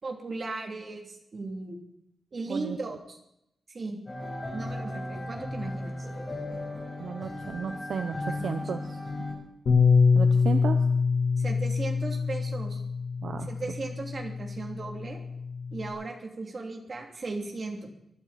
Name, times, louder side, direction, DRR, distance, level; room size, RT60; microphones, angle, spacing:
voice 1, 0.0-1.8 2.3-3.2 3.7-4.0 4.5-6.0 8.4-8.5 11.4-12.8 13.4-15.2 15.7-17.9, right 3 dB, 40° right, 1 dB, 2.9 m, -37 dB
sound 1, 4.1-9.3, left 2 dB, 20° left, 6.8 m, -36 dB
voice 2, 7.0-9.0 10.1-10.8 13.2-13.5, right 6 dB, 65° right, 6 dB, 0.9 m, -33 dB
Bass guitar, 9.7-15.9, left 5 dB, 70° left, 3.8 m, -25 dB
23.5 x 12.0 x 4.3 m, 0.79 s
wide cardioid pair, 165°, 0 cm